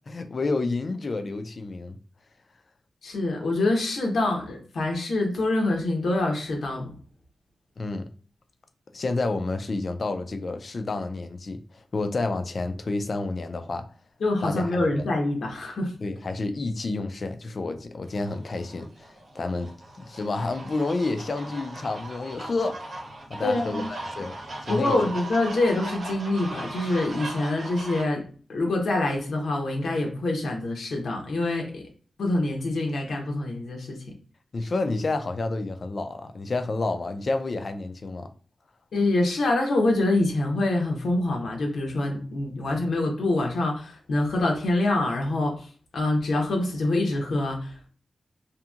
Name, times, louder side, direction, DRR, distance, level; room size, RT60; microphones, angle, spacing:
voice 1, 0.1-2.0 7.8-8.1 8.9-13.8 14.4-14.8 16.0-19.7 20.0-22.8 23.3-24.3 24.6-25.0 34.5-38.3, left 3 dB, 45° left, 0.4 m, -29 dB
voice 2, 3.0-6.9 14.2-15.9 23.4-23.9 24.7-28.2 28.5-31.8 32.2-34.0 38.9-45.7 45.9-47.7, left 2 dB, 80° left, 0.8 m, -25 dB
sound 1, 18.1-28.0, right 1 dB, 65° right, 0.8 m, -38 dB
2.8 x 2.6 x 2.4 m
wide cardioid pair, 115°, 0 cm